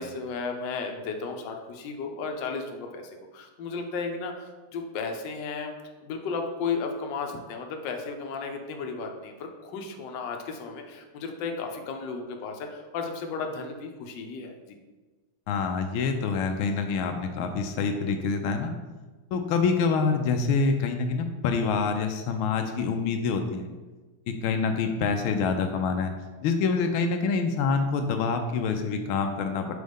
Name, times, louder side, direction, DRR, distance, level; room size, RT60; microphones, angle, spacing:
voice 1, 0.0-3.0 3.3-5.7 6.0-14.8, left 4 dB, 70° left, 3 dB, 1.3 m, -34 dB
voice 2, 15.5-18.7 19.3-23.7 24.3-26.1 26.4-29.7, left 5 dB, 85° left, 5 dB, 1.4 m, -26 dB
6.4 x 4.5 x 3.5 m, 1.3 s
omnidirectional pair, 2.2 m